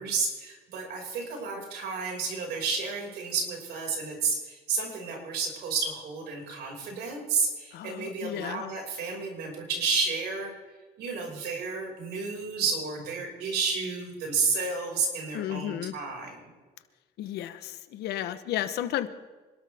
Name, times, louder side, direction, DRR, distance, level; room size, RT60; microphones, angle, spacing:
voice 1, 0.0-10.5 11.0-16.5, right 4 dB, 75° right, 0 dB, 5.7 m, -31 dB
voice 2, 7.7-8.7 15.3-15.9 17.2-19.1, left 12 dB, 75° left, 11 dB, 1.0 m, -33 dB
26.0 x 12.5 x 3.5 m, 1.3 s
cardioid pair, 110°, 17 cm